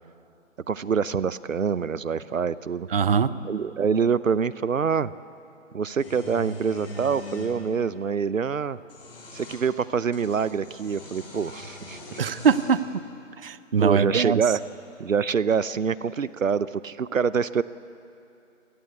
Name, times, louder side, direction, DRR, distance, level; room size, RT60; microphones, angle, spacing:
voice 1, 0.7-2.9 3.4-5.1 5.7-8.8 9.3-12.2 13.8-14.6 15.0-17.6, right 6 dB, 75° right, 17 dB, 0.8 m, -25 dB
voice 2, 2.9-3.3 12.2-12.8 13.4-14.4, right 6 dB, 45° right, 15 dB, 0.8 m, -22 dB
sound 1, 6.0-7.5 8.7-9.6 10.1-12.8, left 1 dB, 50° left, 7.1 m, -41 dB
28.5 x 18.0 x 8.3 m, 2.7 s
figure-of-eight pair, 150°, 39 cm